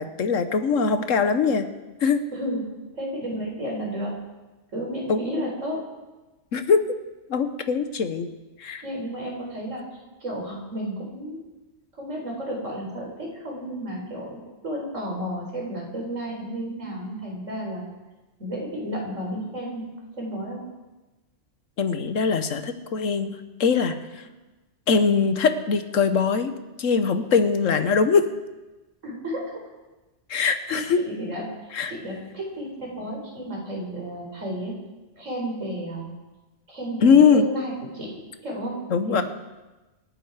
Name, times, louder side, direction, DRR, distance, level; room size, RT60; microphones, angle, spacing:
voice 1, 0.0-1.7 2.0-2.2 5.1-5.2 6.5-7.0 7.3-8.3 8.6-8.8 21.8-24.0 24.9-26.5 26.8-28.2 30.3-31.0 31.7-31.9 37.0-37.5 38.9-39.2, left 5 dB, 80° left, 9 dB, 1.4 m, -21 dB
voice 2, 2.3-2.7 2.9-4.1 4.7-5.8 8.8-9.8 10.2-11.4 12.0-17.9 18.4-20.6 29.0-29.5 30.7-31.4 31.9-34.8 35.1-36.1 36.7-38.8 39.1-39.2, equal, 75° right, -2 dB, 4.6 m, -32 dB
26.5 x 9.4 x 4.9 m, 1.1 s
omnidirectional pair, 1.3 m